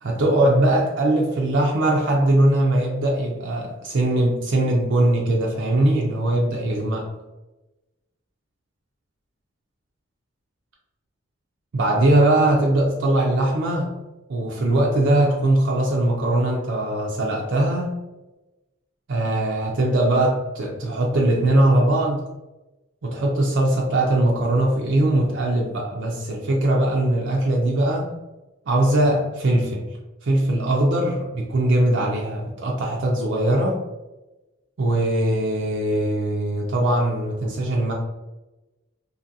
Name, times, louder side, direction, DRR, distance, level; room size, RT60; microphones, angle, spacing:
voice 1, 0.0-7.1 11.7-14.0 14.3-17.9 19.1-22.2 23.0-28.1 28.7-30.0 30.2-33.8 34.8-37.9, right 1 dB, 60° right, -2 dB, 0.4 m, -21 dB
2.7 x 2.6 x 2.6 m, 1.0 s
head